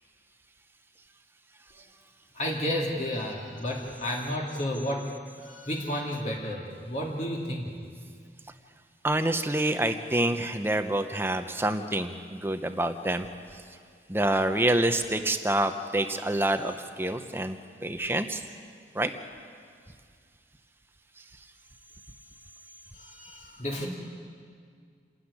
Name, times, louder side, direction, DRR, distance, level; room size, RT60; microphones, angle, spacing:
voice 1, 2.3-5.1 5.4-7.7 22.9-23.9, equal, 40° left, -2 dB, 2.5 m, -32 dB
voice 2, 9.0-13.3 14.1-17.6 17.8-18.4 18.9-19.1, right 1 dB, 15° right, 8 dB, 0.9 m, -27 dB
28.0 x 13.5 x 9.9 m, 2.1 s
head